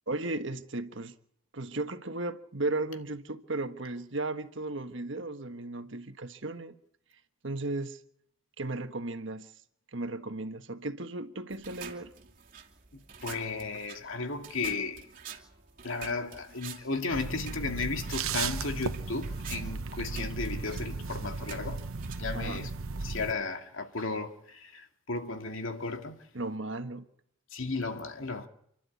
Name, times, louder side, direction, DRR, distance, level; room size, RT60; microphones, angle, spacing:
voice 1, 0.1-1.1 1.5-6.7 7.4-8.0 8.6-9.5 9.9-12.1 22.3-22.7 26.3-27.0, right 2 dB, 60° right, 1.4 m, -35 dB
sound 1, 11.5-23.0, right 6 dB, 40° right, 2.7 m, -48 dB
voice 2, 13.2-15.1 15.8-21.8 22.2-22.7 23.0-26.2 27.5-28.5, left 3 dB, 70° left, 2.3 m, -34 dB
sound 2, 17.1-23.3, right 4 dB, 85° right, 1.0 m, -35 dB
29.0 x 12.5 x 8.4 m
head